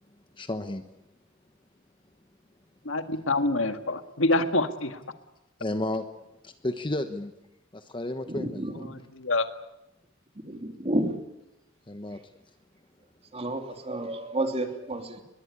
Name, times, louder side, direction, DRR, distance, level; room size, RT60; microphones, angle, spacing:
voice 1, 0.4-0.8 5.6-6.1 6.4-7.3 7.7-8.8 11.9-12.2, left 1 dB, 25° left, 8 dB, 1.1 m, -32 dB
voice 2, 2.9-5.0 9.2-9.5, left 2 dB, 70° left, 8 dB, 1.9 m, -26 dB
voice 3, 8.3-8.9 10.4-11.1 13.3-15.2, right 1 dB, 30° right, 5 dB, 2.9 m, -31 dB
23.5 x 21.5 x 9.8 m, 0.92 s
head